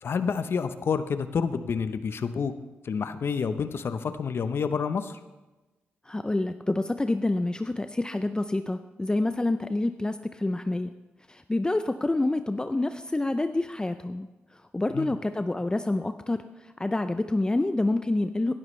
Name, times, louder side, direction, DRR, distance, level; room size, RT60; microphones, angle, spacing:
voice 1, 0.0-2.5 2.8-5.2 14.9-15.1, left 6 dB, 65° left, 11 dB, 0.8 m, -28 dB
voice 2, 6.0-10.9 11.3-18.5, left 2 dB, 20° left, 9 dB, 0.5 m, -28 dB
16.0 x 12.0 x 3.2 m, 1.1 s
cardioid pair, 60°, 4 cm